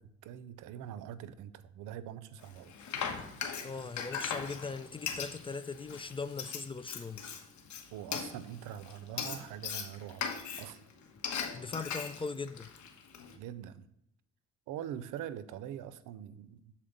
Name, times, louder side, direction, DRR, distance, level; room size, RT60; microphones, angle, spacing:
voice 1, 0.0-2.7 7.9-10.8 13.3-13.9 14.7-16.7, right 10 dB, 90° right, 0.6 m, -43 dB
Frying (food), 2.4-13.3, left 7 dB, 75° left, 1.1 m, -39 dB
voice 2, 3.6-7.2 11.5-12.7, left 4 dB, 20° left, 0.3 m, -39 dB
7.4 x 4.3 x 5.1 m
cardioid pair, 90°, 30 cm